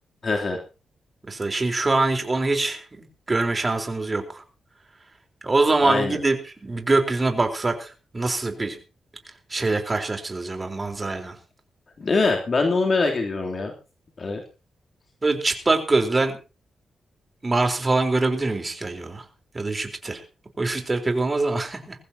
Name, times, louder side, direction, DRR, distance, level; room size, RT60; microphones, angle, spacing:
voice 1, 0.2-0.6 5.8-6.2 12.0-13.7 14.2-14.4, left 3 dB, 45° left, 1 dB, 3.2 m, -23 dB
voice 2, 1.2-4.4 5.4-6.4 6.6-8.8 9.5-11.3 15.2-16.3 17.4-19.2 19.5-20.2 20.6-21.9, right 3 dB, 25° right, 4 dB, 4.0 m, -24 dB
21.5 x 15.0 x 2.9 m, 0.32 s
cardioid pair, 90°, 0 cm